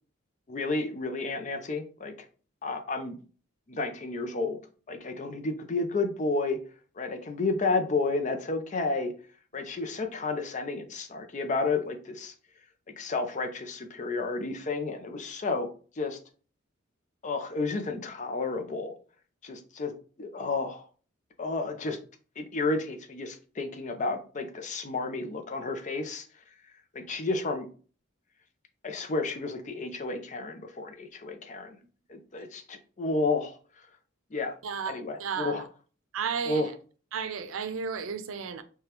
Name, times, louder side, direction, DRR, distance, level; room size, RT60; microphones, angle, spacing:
voice 1, 0.5-2.1 2.6-3.2 3.7-4.6 4.9-6.6 7.0-9.1 9.5-12.3 12.9-15.7 16.0-16.2 17.2-18.9 19.4-19.9 20.2-20.8 21.4-22.0 22.4-26.3 26.9-27.7 28.8-31.8 32.1-33.6 34.3-34.5 34.9-35.6 36.5-36.7, left 3 dB, 35° left, 0.5 m, -31 dB
voice 2, 34.6-35.6 36.1-36.7 37.1-38.6, right 6 dB, 85° right, 0.5 m, -33 dB
4.9 x 2.2 x 2.9 m
head